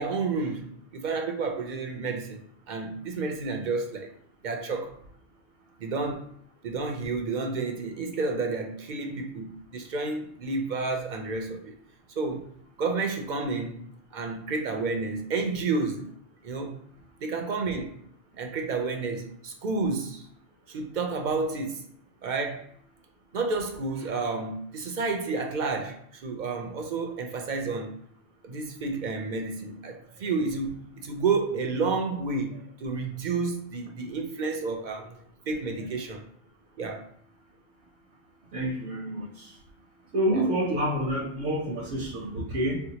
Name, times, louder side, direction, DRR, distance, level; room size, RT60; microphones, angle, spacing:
voice 1, 0.0-2.4 2.7-4.1 4.4-5.0 5.8-6.3 6.6-11.7 12.2-12.5 12.8-13.8 14.1-16.0 16.4-16.8 17.2-18.0 18.4-20.3 20.7-21.8 22.2-22.7 23.3-27.9 28.4-35.2 35.5-36.2 36.8-37.1 40.3-40.4, right 4 dB, 55° right, 0.6 m, -30 dB
voice 2, 38.5-39.6 40.1-42.8, right 1 dB, 80° right, 1.0 m, -28 dB
4.5 x 2.1 x 2.8 m
omnidirectional pair, 1.1 m